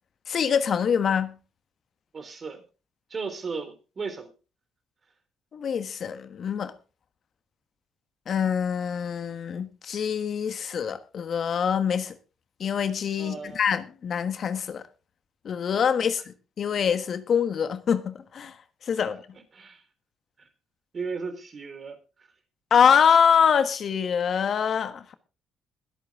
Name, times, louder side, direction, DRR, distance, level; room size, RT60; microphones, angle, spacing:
voice 1, 0.3-1.4 5.5-6.7 8.3-12.1 12.6-14.8 15.4-18.5 18.8-19.2 22.7-25.1, left 7 dB, 55° left, 1.3 m, -24 dB
voice 2, 2.1-2.6 3.1-4.3 13.2-13.6 19.5-19.8 20.4-20.5 20.9-22.3, right 4 dB, 45° right, 3.9 m, -36 dB
21.5 x 8.3 x 3.7 m
hypercardioid pair, 55°, 0 cm